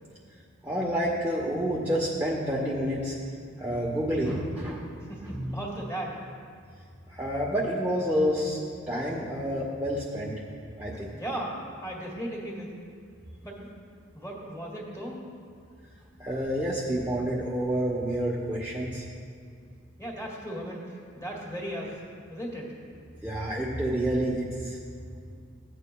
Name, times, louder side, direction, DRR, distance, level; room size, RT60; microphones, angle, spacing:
voice 1, 0.6-3.1 3.6-4.9 5.2-5.5 7.1-10.3 10.8-11.1 16.2-19.0 23.2-24.8, equal, 10° right, -5 dB, 0.9 m, -29 dB
voice 2, 5.1-6.2 11.1-12.7 13.4-13.7 14.1-15.2 20.0-22.0 22.3-22.7, right 1 dB, 15° left, -3 dB, 1.9 m, -36 dB
15.5 x 9.2 x 2.3 m, 2.2 s
head